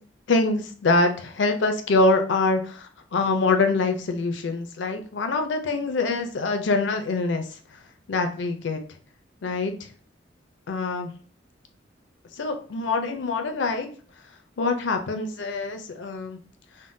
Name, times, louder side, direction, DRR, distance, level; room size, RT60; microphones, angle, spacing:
voice 1, 0.3-7.5 8.1-8.8 9.4-9.7 10.7-11.1 12.4-13.9 14.6-16.4, left 3 dB, 75° left, 6 dB, 0.5 m, -24 dB
3.6 x 2.1 x 2.6 m, 0.43 s
head